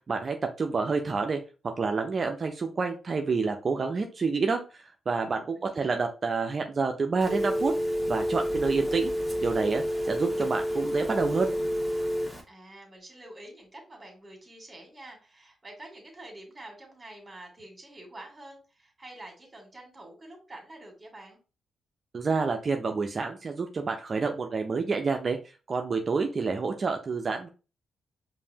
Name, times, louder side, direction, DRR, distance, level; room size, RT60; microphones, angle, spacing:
voice 1, 0.1-4.6 5.1-7.7 8.1-9.1 9.4-11.5 22.1-25.4 25.7-27.5, right 4 dB, 50° right, 4 dB, 0.5 m, -28 dB
voice 2, 5.5-6.0 12.5-21.4, right 1 dB, 30° right, 2 dB, 1.9 m, -47 dB
Telephone, 7.2-12.4, equal, ahead, 1.7 m, -29 dB
5.2 x 2.6 x 2.8 m, 0.33 s
hypercardioid pair, 45°, 0 cm